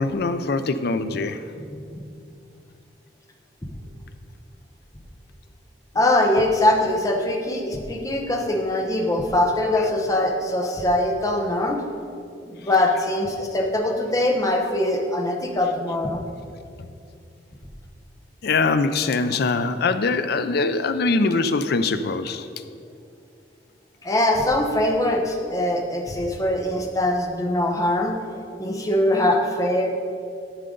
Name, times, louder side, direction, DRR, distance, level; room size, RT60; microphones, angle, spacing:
voice 1, 0.0-1.4 18.4-22.5, left 3 dB, 60° left, 11 dB, 0.5 m, -22 dB
voice 2, 1.7-2.0 5.9-11.8 12.5-16.2 24.0-28.1 28.6-29.9, left 1 dB, 20° left, 1 dB, 0.9 m, -22 dB
11.0 x 6.7 x 3.8 m, 2.5 s
head